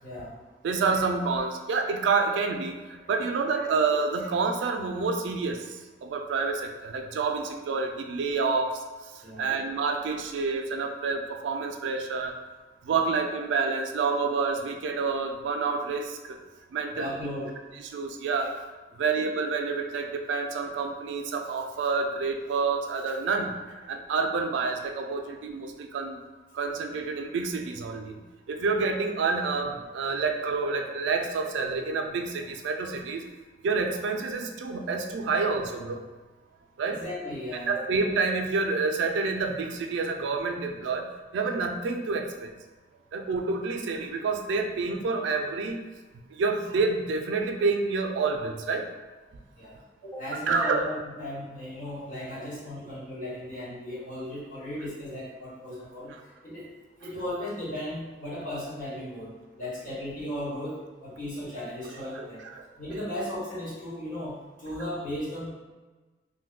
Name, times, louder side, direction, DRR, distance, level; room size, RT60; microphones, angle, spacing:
voice 1, 0.0-0.3 9.2-9.6 16.9-17.5 36.8-37.9 49.6-56.7 57.0-62.4 62.8-65.5, left 1 dB, 45° left, -9 dB, 1.2 m, -36 dB
voice 2, 0.6-5.6 6.0-8.7 9.4-12.3 12.9-16.4 16.7-17.1 17.9-18.5 19.0-26.2 26.5-28.2 28.5-33.2 33.6-36.0 36.8-37.0 37.7-41.1 41.3-42.5 43.1-45.8 46.3-48.8 50.5-50.8, right 4 dB, 75° right, 4 dB, 0.3 m, -28 dB
2.6 x 2.2 x 3.5 m, 1.3 s
head